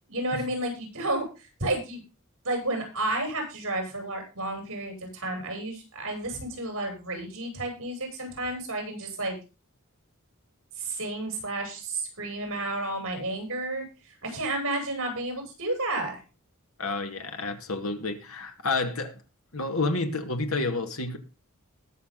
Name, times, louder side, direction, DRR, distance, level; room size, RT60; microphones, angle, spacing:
voice 1, 0.0-2.0 2.4-9.4 10.8-13.8 14.2-16.2, right 2 dB, 60° right, 7.9 m, -31 dB
voice 2, 16.8-19.2 19.5-21.2, left 3 dB, 70° left, 2.4 m, -30 dB
20.5 x 7.1 x 4.1 m
head